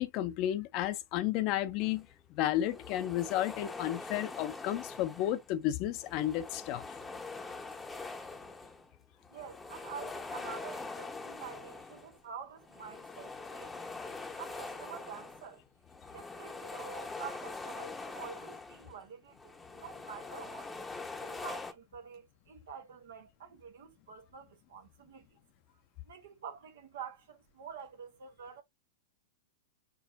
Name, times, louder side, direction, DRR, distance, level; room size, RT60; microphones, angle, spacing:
voice 1, 0.0-2.1 2.3-6.8, left 13 dB, 45° left, 0.6 m, -32 dB
sound 1, 1.8-2.0 2.5-5.5 5.9-8.9 9.2-12.2 12.6-19.0 19.3-21.7, left 3 dB, 10° left, 0.8 m, -44 dB
voice 2, 9.3-13.8 14.4-15.6 16.1-20.7 21.2-25.4 26.0-28.6, right 7 dB, 70° right, 1.0 m, -47 dB
4.6 x 4.4 x 2.6 m
hypercardioid pair, 105°, 0 cm